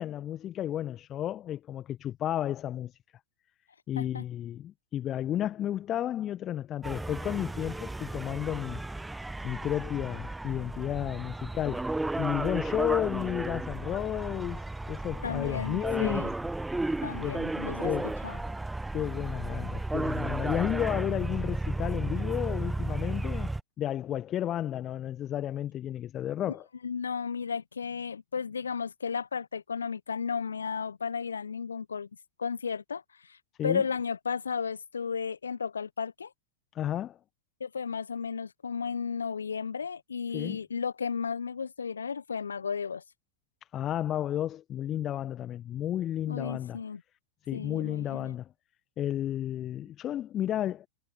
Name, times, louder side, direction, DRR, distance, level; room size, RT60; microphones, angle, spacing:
voice 1, 0.0-3.0 3.9-8.8 9.4-16.3 17.2-17.4 17.8-18.2 18.9-23.5 23.8-26.7 33.6-33.8 36.7-37.2 40.3-40.6 43.7-46.8 47.5-48.5 49.0-50.9, left 11 dB, 30° left, 1.6 m, -32 dB
sound 1, 6.8-23.6, right 2 dB, 5° right, 1.3 m, -34 dB
voice 2, 15.2-16.3 17.0-17.9 18.2-18.4 26.8-32.1 32.4-36.3 37.6-43.0 46.3-47.0 47.5-48.3, left 6 dB, 70° left, 1.0 m, -34 dB
figure-of-eight pair, 90°, 0 cm